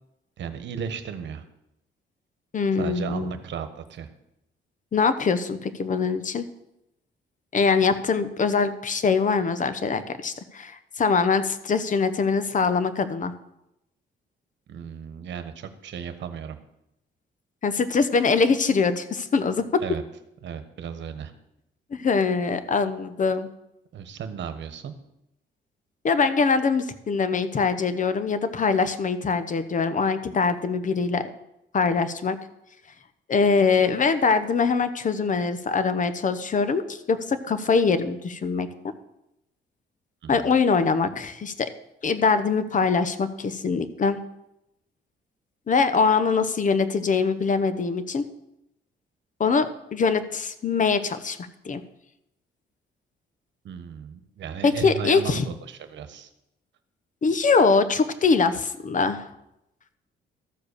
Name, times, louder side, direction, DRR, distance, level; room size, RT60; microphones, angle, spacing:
voice 1, 0.4-1.4 2.7-4.1 14.7-16.6 19.8-20.0 20.4-21.3 23.9-24.9 40.2-40.5 53.6-56.3, right 7 dB, 65° right, 9 dB, 1.2 m, -35 dB
voice 2, 2.5-3.3 4.9-6.4 7.5-13.3 17.6-19.8 21.9-23.5 26.0-31.2 31.7-32.4 33.3-38.7 40.3-41.7 42.0-44.2 45.7-48.3 49.4-51.4 51.6-51.8 54.6-55.4 57.2-59.3, left 5 dB, 40° left, 12 dB, 0.9 m, -23 dB
13.5 x 4.8 x 6.7 m, 0.86 s
cardioid pair, 90°, 20 cm